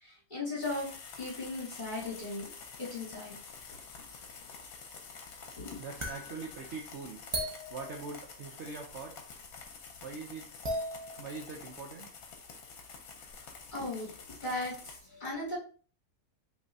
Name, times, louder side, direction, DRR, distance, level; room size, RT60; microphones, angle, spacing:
voice 1, 0.0-0.9 1.2-2.5 2.8-3.4 5.6-5.8 13.7-14.1 14.4-15.6, left 2 dB, 30° left, -5 dB, 1.9 m, -37 dB
sound 1, 0.6-15.0, left 5 dB, 65° left, 1.2 m, -49 dB
voice 2, 5.8-7.2 7.7-9.1 10.0-10.5 11.2-12.1, right 4 dB, 65° right, 2 dB, 0.7 m, -42 dB
sound 2, 6.0-8.6 8.8-9.7 9.9-10.1 10.5-11.5 12.3-12.4 12.9-13.0 13.3-13.7, equal, 30° right, 0.5 m, -39 dB
5.3 x 3.3 x 2.6 m, 0.41 s
omnidirectional pair, 1.7 m